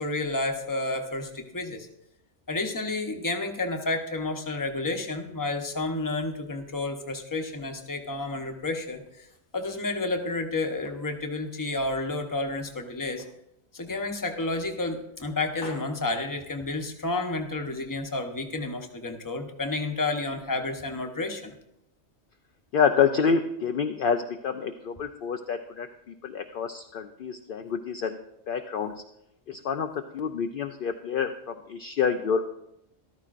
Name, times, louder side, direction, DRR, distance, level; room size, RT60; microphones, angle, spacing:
voice 1, 0.0-1.9 2.5-9.3 9.5-13.2 13.7-21.6, left 2 dB, 20° left, 4 dB, 0.8 m, -30 dB
sound 1, 9.0-10.5 10.8-12.2 12.6-13.4 13.8-14.0 14.4-15.2 15.5-17.0, left 2 dB, 80° left, 2.0 m, -49 dB
voice 2, 22.7-28.2 28.5-28.9 29.5-32.4, left 6 dB, 60° left, 6 dB, 0.6 m, -27 dB
13.5 x 12.5 x 2.5 m, 0.81 s
omnidirectional pair, 1.2 m